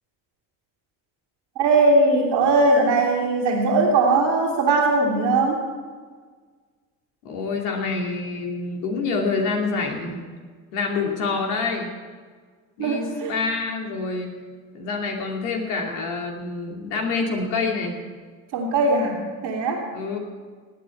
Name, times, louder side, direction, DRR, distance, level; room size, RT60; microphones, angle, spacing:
voice 1, 1.6-5.6 12.8-13.3 18.5-19.8, right 2 dB, 80° right, -3 dB, 2.9 m, -20 dB
voice 2, 7.2-10.2 10.7-11.9 12.8-14.3 14.7-18.0 19.9-20.2, left 4 dB, 85° left, 1 dB, 2.8 m, -27 dB
18.0 x 9.2 x 8.6 m, 1.6 s
hypercardioid pair, 55°, 42 cm